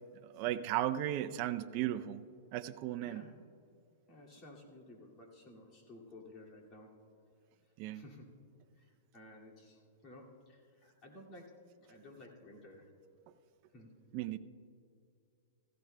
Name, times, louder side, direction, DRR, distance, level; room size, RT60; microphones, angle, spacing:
voice 1, 0.2-2.2 2.5-3.2 7.8-8.0 14.1-14.4, right 13 dB, 40° right, 10 dB, 0.5 m, -35 dB
voice 2, 4.1-6.9 7.9-8.3 8.8-8.9 9.1-11.6 11.9-12.9 13.7-13.9, left 1 dB, 30° left, -2 dB, 2.3 m, -54 dB
17.0 x 15.0 x 2.2 m, 2.4 s
hypercardioid pair, 145°, 0 cm